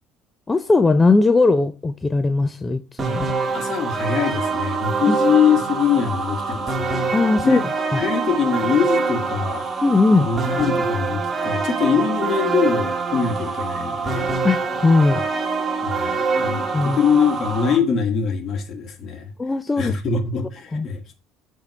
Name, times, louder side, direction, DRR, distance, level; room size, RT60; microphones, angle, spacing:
voice 1, 0.5-3.3 5.1-5.2 7.1-7.6 7.9-8.0 9.8-10.3 14.4-15.2 16.7-17.0 19.4-19.9 20.7-20.9, left 3 dB, 15° left, 0.5 m, -18 dB
sound 1, 3.0-17.8, right 4 dB, 25° right, 1.6 m, -25 dB
voice 2, 3.5-7.1 7.4-7.6 8.0-9.6 10.1-14.3 15.8-19.3 19.8-21.1, left 7 dB, 45° left, 1.8 m, -23 dB
7.9 x 3.6 x 5.5 m
supercardioid pair, 105°, 0 cm